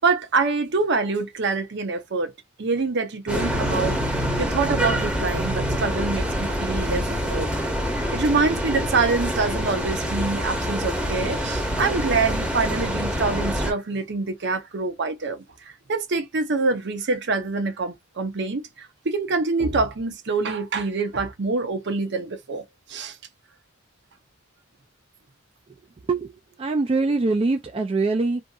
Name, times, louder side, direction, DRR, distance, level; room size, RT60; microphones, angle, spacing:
voice 1, 0.0-2.3 2.6-4.0 4.4-7.5 8.1-15.4 15.9-22.6 22.9-23.2, right 4 dB, 60° right, 0.7 m, -25 dB
sound 1, 3.3-13.7, equal, 5° right, 0.9 m, -26 dB
voice 2, 26.6-28.4, right 3 dB, 30° right, 0.3 m, -23 dB
2.6 x 2.6 x 2.3 m
head